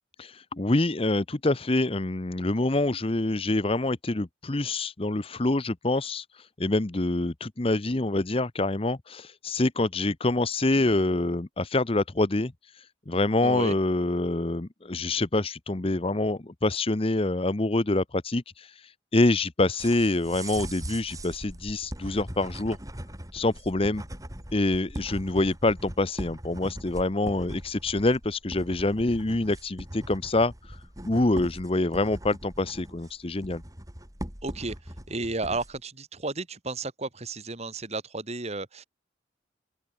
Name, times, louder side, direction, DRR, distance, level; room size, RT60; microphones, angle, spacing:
voice 1, 0.2-22.8 23.3-24.0 24.5-30.8 31.1-33.6, left 2 dB, 30° left, 0.9 m, -26 dB
voice 2, 13.4-13.8 34.4-34.8 35.1-38.8, right 3 dB, 35° right, 2.0 m, -33 dB
sound 1, 19.8-35.8, right 1 dB, 20° right, 4.7 m, -40 dB
open air
head